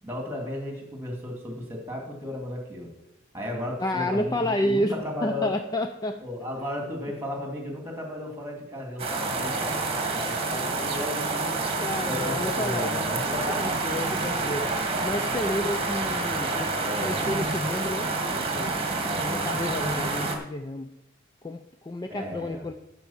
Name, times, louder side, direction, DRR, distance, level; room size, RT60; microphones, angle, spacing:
voice 1, 0.0-2.9 3.3-5.5 6.2-14.0 14.7-14.8 16.7-17.2 19.0-19.6 22.1-22.7, left 1 dB, 10° right, 1 dB, 2.4 m, -35 dB
voice 2, 3.8-5.0 5.2-6.2 11.8-13.0 13.3-14.7 15.0-18.9 19.2-21.0 21.4-22.7, left 1 dB, 20° left, 6 dB, 0.4 m, -30 dB
sound 1, 9.0-20.4, right 3 dB, 30° right, 1.4 m, -28 dB
11.5 x 4.7 x 7.2 m, 0.89 s
head